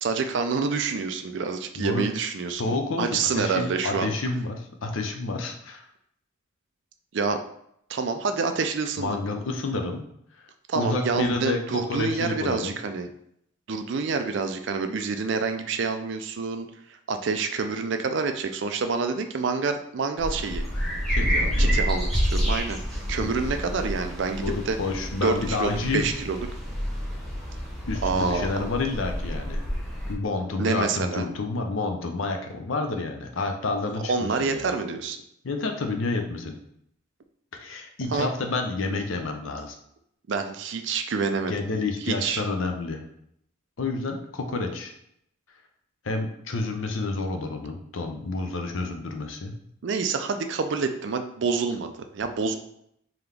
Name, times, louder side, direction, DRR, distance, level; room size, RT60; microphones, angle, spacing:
voice 1, 0.0-4.2 7.1-7.4 7.9-9.2 10.7-13.1 13.7-16.7 17.1-20.6 21.2-24.8 25.2-26.5 28.0-28.6 30.6-31.3 34.1-35.2 38.1-38.3 40.3-41.5 42.1-42.4 49.8-52.6, right 4 dB, 60° right, 7 dB, 0.4 m, -27 dB
voice 2, 2.6-5.8 9.0-10.0 10.7-12.8 21.1-21.8 23.2-23.3 24.4-26.1 27.9-29.7 30.1-34.6 35.4-36.6 37.6-39.7 41.5-43.0 43.8-44.9 46.0-49.5, left 3 dB, 70° left, 4 dB, 0.6 m, -29 dB
sound 1, 20.2-30.1, equal, ahead, 0.8 m, -28 dB
3.8 x 2.9 x 3.3 m, 0.73 s
head